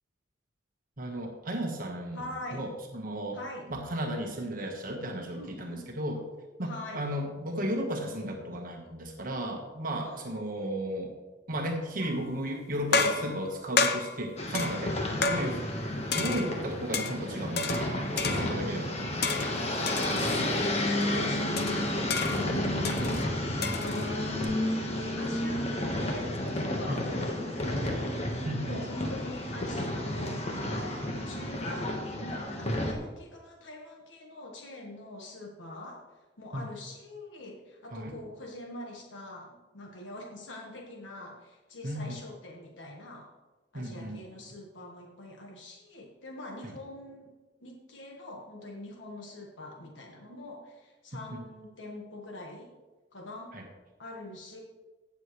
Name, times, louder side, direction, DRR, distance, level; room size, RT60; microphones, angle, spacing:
voice 1, 1.0-2.3 2.5-3.4 3.7-6.2 6.6-11.1 11.5-15.6 16.2-19.4 26.9-27.0 28.4-28.8 36.5-36.7 37.9-38.1 41.8-42.2 43.7-44.2 46.6-46.7 51.3-51.4 53.5-53.6, right 1 dB, 50° right, 2 dB, 1.4 m, -34 dB
voice 2, 2.1-2.7 3.3-3.7 5.3-5.9 6.6-7.0 10.0-10.7 12.9-13.4 14.9-15.7 18.3-18.9 20.0-22.0 22.3-30.4 31.2-36.0 36.4-43.3 43.7-47.3 47.6-52.7 53.1-53.5 54.0-54.6, left 1 dB, 90° left, 0 dB, 1.5 m, -44 dB
sound 1, 12.0-12.4 12.9-15.8 16.1-17.2 17.6-18.7 19.2-20.5 21.0-21.1 21.6-24.5, left 4 dB, 60° left, 0.9 m, -31 dB
sound 2, 14.4-32.9, left 1 dB, 35° left, 1.3 m, -31 dB
16.5 x 7.2 x 3.2 m, 1.2 s
head